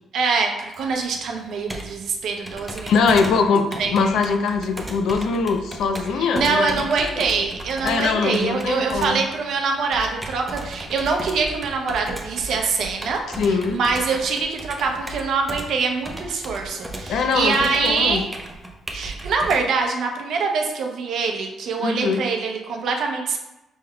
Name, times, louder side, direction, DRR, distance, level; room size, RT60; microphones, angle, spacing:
voice 1, 0.1-3.2 3.8-3.9 6.2-13.2 13.7-18.3 18.9-23.4, right 4 dB, 70° right, 2 dB, 0.6 m, -24 dB
Computer keyboard, 0.7-19.6, right 1 dB, 10° right, 0.6 m, -36 dB
voice 2, 2.9-6.9 7.8-9.2 13.4-13.8 17.1-18.2 21.8-22.2, left 5 dB, 75° left, 6 dB, 0.4 m, -22 dB
5.2 x 3.6 x 2.3 m, 0.97 s
cardioid pair, 90°, 0 cm